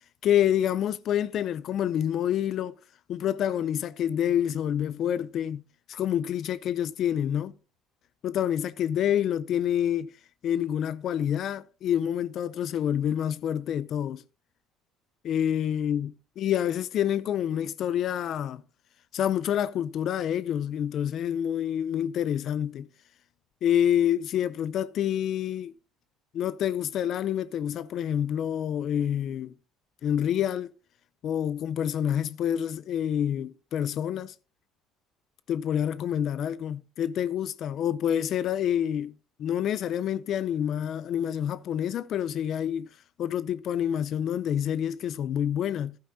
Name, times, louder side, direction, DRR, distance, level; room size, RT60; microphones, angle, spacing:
voice 1, 0.2-2.7 3.1-5.6 5.9-7.5 8.2-10.1 10.4-14.2 15.2-18.6 19.1-22.9 23.6-25.7 26.3-29.5 30.0-30.7 31.2-34.3 35.5-39.1 39.4-42.9 43.2-46.0, left 10 dB, 55° left, 0.5 m, -27 dB
13.5 x 11.5 x 2.7 m
supercardioid pair, 100°, 0 cm